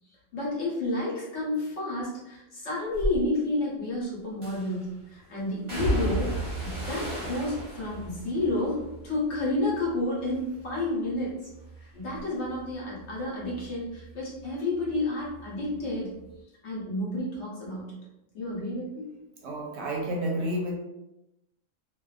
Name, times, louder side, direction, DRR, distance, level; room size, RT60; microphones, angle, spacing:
voice 1, 0.3-11.3 11.8-16.1 16.6-18.0 18.3-19.0, left 2 dB, 65° left, -6 dB, 1.2 m, -30 dB
sound 1, 2.9-3.2 4.4-4.9 5.7-9.9 10.2-10.9 11.2-14.5 14.8-15.9 16.2-16.3, right 1 dB, 40° right, 0.8 m, -34 dB
voice 2, 19.4-20.7, right 1 dB, 70° right, -1 dB, 0.8 m, -30 dB
2.5 x 2.3 x 2.4 m, 0.92 s
omnidirectional pair, 1.3 m